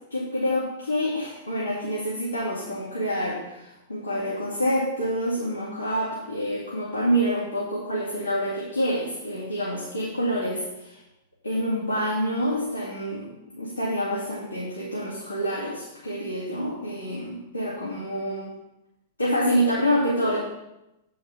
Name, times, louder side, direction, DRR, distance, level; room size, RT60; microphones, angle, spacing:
voice 1, 0.1-11.0 11.4-13.3 13.5-18.5 19.2-20.4, equal, 90° left, -8 dB, 2.5 m, -27 dB
8.1 x 5.6 x 5.6 m, 0.91 s
figure-of-eight pair, 100°, 0 cm